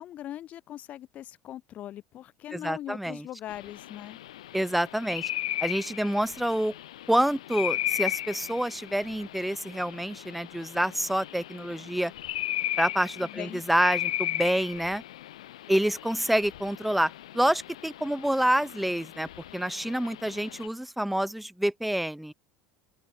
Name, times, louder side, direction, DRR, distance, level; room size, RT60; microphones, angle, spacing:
voice 1, 0.0-4.2 13.2-13.6, left 12 dB, 45° left, 1.2 m, -40 dB
voice 2, 2.5-3.3 4.5-5.3 5.6-6.7 7.1-12.1 12.8-15.0 15.7-22.3, right 1 dB, 5° right, 0.4 m, -27 dB
sound 1, 3.5-20.7, left 14 dB, 85° left, 1.3 m, -36 dB
open air
hypercardioid pair, 90°, 3 cm